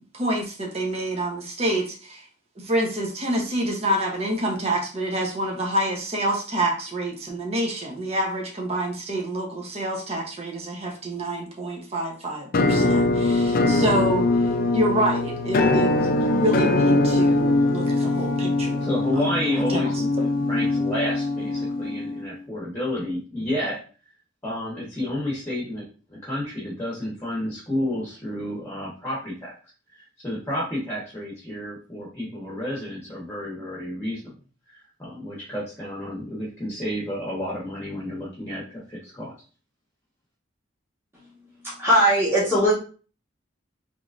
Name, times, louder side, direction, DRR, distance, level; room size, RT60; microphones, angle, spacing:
voice 1, 0.1-2.2 2.6-18.9 19.1-19.2 19.7-19.8, right 1 dB, 30° right, 0 dB, 0.8 m, -27 dB
Musical instrument, 12.5-22.3, left 2 dB, 50° left, 0.4 m, -22 dB
voice 2, 18.8-23.8 24.4-29.6 29.9-34.3 34.7-39.3, left 1 dB, 15° left, -6 dB, 1.0 m, -31 dB
voice 3, 41.6-42.7, equal, 15° right, -9 dB, 1.3 m, -19 dB
3.8 x 3.1 x 2.5 m, 0.38 s
head